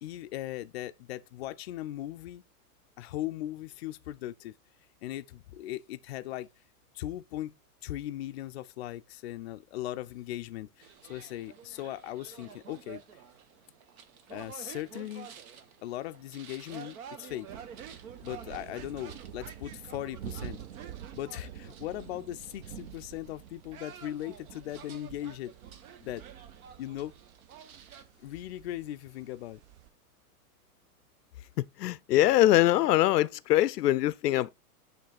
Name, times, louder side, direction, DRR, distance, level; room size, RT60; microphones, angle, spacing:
voice 1, 0.0-2.4 3.0-4.5 5.0-6.5 6.9-7.5 7.8-13.0 14.3-15.3 15.8-17.5 18.2-20.6 21.1-25.5 26.0-26.2 26.8-27.1 28.2-29.6, left 14 dB, 45° left, 0.4 m, -38 dB
sound 1, 10.8-28.0, right 8 dB, 65° right, 1.2 m, -50 dB
sound 2, 17.5-29.9, right 10 dB, 45° right, 0.8 m, -48 dB
voice 2, 31.8-34.5, left 14 dB, 90° left, 0.6 m, -23 dB
8.9 x 3.3 x 4.0 m
hypercardioid pair, 150°, 47 cm